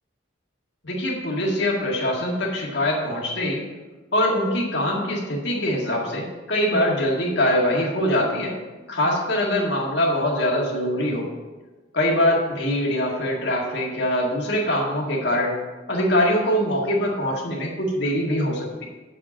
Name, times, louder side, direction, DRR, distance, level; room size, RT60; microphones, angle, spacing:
voice 1, 0.8-3.6 4.1-8.5 8.9-11.3 11.9-15.6 15.9-18.8, left 1 dB, 55° left, -2 dB, 1.9 m, -23 dB
7.1 x 5.0 x 7.1 m, 1.2 s
head